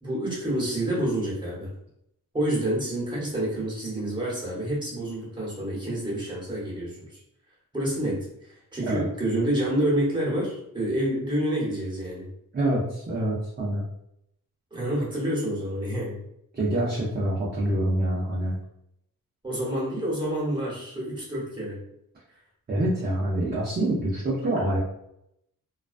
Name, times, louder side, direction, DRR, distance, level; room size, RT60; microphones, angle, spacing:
voice 1, 0.0-1.7 2.3-7.2 7.7-12.3 14.7-16.2 19.4-21.8, right 1 dB, 15° right, -5 dB, 1.0 m, -28 dB
voice 2, 12.5-13.8 16.5-18.6 22.7-24.8, right 1 dB, 30° right, -5 dB, 0.5 m, -26 dB
2.3 x 2.2 x 2.4 m, 0.78 s
wide cardioid pair, 130°, 35 cm